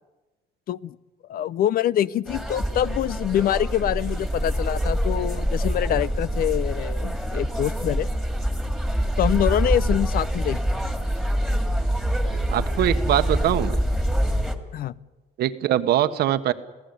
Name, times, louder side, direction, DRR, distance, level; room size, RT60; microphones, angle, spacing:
voice 1, 1.3-8.1 9.2-10.8 14.7-14.9, left 11 dB, 60° left, 19 dB, 0.7 m, -25 dB
sound 1, 2.3-14.6, equal, ahead, 2.4 m, -25 dB
voice 2, 12.5-13.8 15.4-16.5, right 12 dB, 70° right, 11 dB, 1.3 m, -22 dB
27.5 x 17.0 x 8.2 m, 1.2 s
cardioid pair, 110°, 17 cm